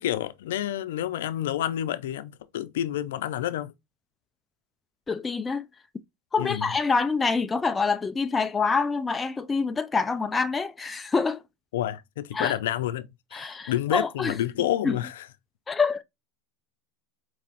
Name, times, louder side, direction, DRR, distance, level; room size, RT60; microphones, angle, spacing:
voice 1, 0.0-3.7 6.4-6.7 11.7-15.3, left 12 dB, 75° left, 0.5 m, -29 dB
voice 2, 5.1-5.6 6.3-11.4 12.3-12.5 13.3-14.3 14.8-15.0 15.7-16.0, left 4 dB, 15° left, 0.3 m, -26 dB
4.5 x 3.0 x 2.8 m
supercardioid pair, 130°, 0 cm